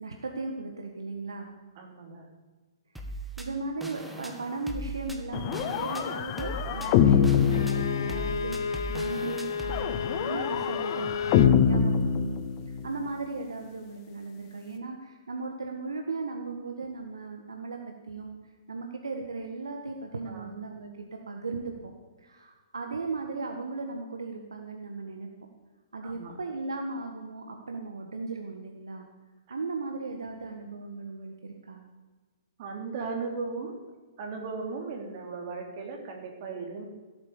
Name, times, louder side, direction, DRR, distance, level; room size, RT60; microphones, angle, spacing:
voice 1, 0.0-1.5 3.1-8.6 8.9-12.4 12.7-18.4 18.7-21.7 22.2-25.3 25.9-29.1 29.5-31.8, right 3 dB, 75° right, 3 dB, 1.6 m, -37 dB
voice 2, 1.8-2.3 20.3-20.5 26.0-26.4 32.6-33.8 34.2-36.9, right 4 dB, 45° right, 2 dB, 3.5 m, -37 dB
sound 1, 3.0-9.8, right 1 dB, 5° right, 1.7 m, -39 dB
sound 2, 5.3-8.6 9.7-13.0, left 8 dB, 35° left, 1.1 m, -25 dB
Bowed string instrument, 7.5-11.6, left 6 dB, 65° left, 0.7 m, -32 dB
16.5 x 8.9 x 7.2 m, 1.3 s
figure-of-eight pair, 120°, 2 cm